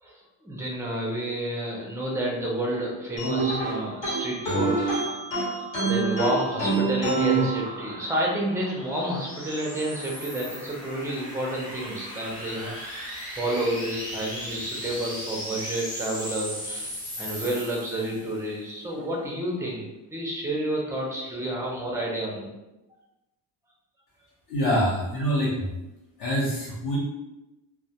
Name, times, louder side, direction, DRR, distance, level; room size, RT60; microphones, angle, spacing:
voice 1, 0.0-5.1 5.5-13.1 13.4-19.9 20.1-22.5, right 1 dB, 5° right, -3 dB, 0.3 m, -30 dB
sound 1, 3.2-8.2, right 3 dB, 75° left, 1.2 m, -26 dB
sound 2, 6.4-18.4, equal, 10° left, 0.8 m, -38 dB
voice 2, 24.5-25.7 26.2-27.0, equal, 55° left, -5 dB, 0.8 m, -25 dB
2.2 x 2.1 x 2.7 m, 0.96 s
cardioid pair, 140°, 44 cm